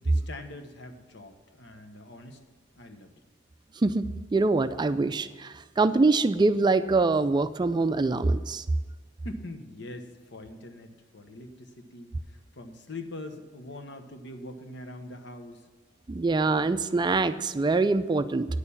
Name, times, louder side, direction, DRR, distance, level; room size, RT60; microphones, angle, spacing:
voice 1, 0.0-2.4 2.7-3.1 9.2-15.6, left 1 dB, 65° left, 7 dB, 1.1 m, -43 dB
voice 2, 3.8-8.6 16.1-18.5, right 3 dB, 25° right, 12 dB, 0.4 m, -24 dB
9.9 x 6.7 x 7.1 m, 1.4 s
head